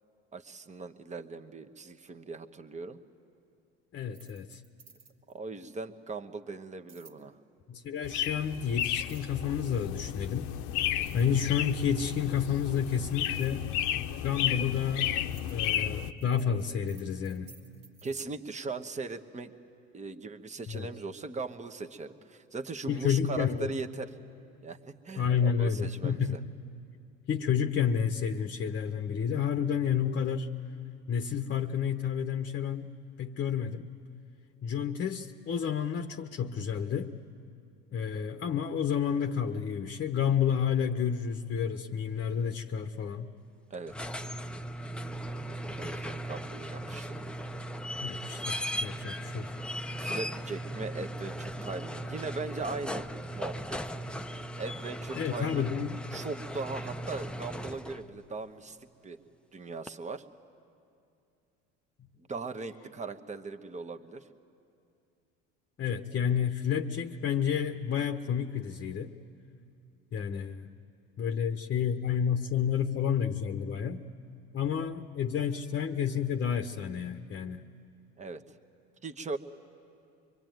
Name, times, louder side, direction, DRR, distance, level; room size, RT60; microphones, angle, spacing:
voice 1, 0.3-3.0 5.3-7.4 18.0-19.5 19.9-24.1 24.6-24.8 25.0-26.4 43.7-43.9 45.4-47.2 50.0-53.1 53.3-53.8 54.6-55.7 56.1-58.8 59.0-59.2 59.5-60.2 62.2-64.3 78.2-78.4 79.0-79.4, right 3 dB, 20° right, 8 dB, 1.1 m, -39 dB
voice 2, 3.9-4.6 7.7-10.5 11.1-13.7 14.2-15.2 15.5-17.5 20.7-20.9 22.9-23.7 25.2-26.4 27.3-30.5 31.1-32.9 33.2-33.9 34.6-37.1 37.9-43.3 48.0-49.5 55.1-56.0 65.8-69.2 70.1-70.7 71.2-74.0 74.5-77.7, left 7 dB, 35° left, 6 dB, 0.9 m, -30 dB
sound 1, 4.0-5.4 6.9-7.2 9.0-9.5 10.4-10.5 10.8-11.9 13.3-13.6 14.5-18.3, right 4 dB, 75° right, 2.3 m, -57 dB
sound 2, 8.0-16.1, left 11 dB, 70° left, 0.8 m, -33 dB
sound 3, 43.7-58.1 59.9-60.0, equal, 5° left, 0.6 m, -37 dB
24.5 x 22.5 x 9.3 m, 2.6 s
supercardioid pair, 85°, 32 cm